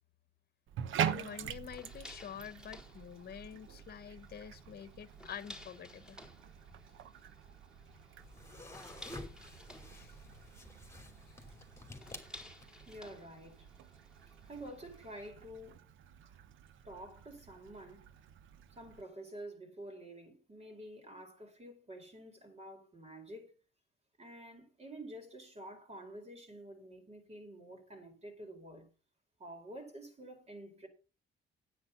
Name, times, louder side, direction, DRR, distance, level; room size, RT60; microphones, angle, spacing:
Bathtub (filling or washing), 0.7-19.0, right 9 dB, 80° right, 1.0 m, -45 dB
voice 1, 1.0-6.2 9.9-10.2 11.3-11.6, left 8 dB, 50° left, 1.2 m, -48 dB
sound 1, 1.6-15.3, left 1 dB, 5° right, 3.9 m, -56 dB
sound 2, 8.2-13.0, left 2 dB, 15° left, 3.0 m, -51 dB
voice 2, 12.8-13.7 14.4-15.8 16.2-16.4 16.8-18.1 18.7-23.5 24.2-28.9 29.4-30.9, right 1 dB, 30° right, 4.7 m, -49 dB
9.7 x 8.7 x 5.9 m
cardioid pair, 90°, 20 cm